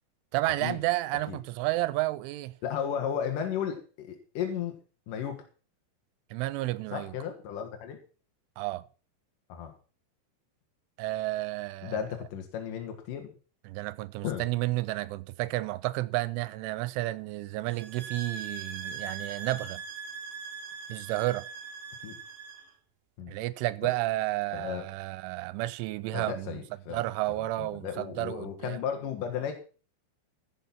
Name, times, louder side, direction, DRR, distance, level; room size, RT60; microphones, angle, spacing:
voice 1, 0.3-2.6 6.3-7.2 8.6-8.8 11.0-12.0 13.7-19.8 20.9-21.5 23.3-26.6 26.9-28.8, right 18 dB, 85° right, 3.2 m, -31 dB
voice 2, 2.6-4.8 5.1-5.4 6.9-8.0 9.5-9.7 11.8-13.3 14.2-14.4 22.0-22.2 23.2-23.3 24.5-24.8 26.1-27.0 27.3-29.5, left 8 dB, 65° left, 2.3 m, -34 dB
sound 1, 17.7-22.7, right 6 dB, 65° right, 2.5 m, -41 dB
15.5 x 7.1 x 5.8 m
omnidirectional pair, 5.5 m